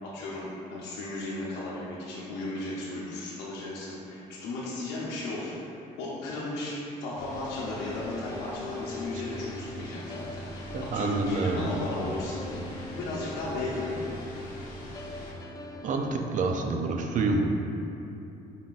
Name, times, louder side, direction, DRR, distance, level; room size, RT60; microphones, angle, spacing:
voice 1, 0.0-5.6 6.0-14.2, left 2 dB, 90° left, -8 dB, 0.7 m, -35 dB
sound 1, 7.1-15.3, right 1 dB, 40° left, 1.2 m, -43 dB
sound 2, 7.3-16.2, left 3 dB, 20° left, 0.4 m, -40 dB
voice 2, 10.7-11.8 15.8-17.4, right 3 dB, 50° right, 3 dB, 0.5 m, -28 dB
5.5 x 3.9 x 2.4 m, 2.8 s
cardioid pair, 110°, 17 cm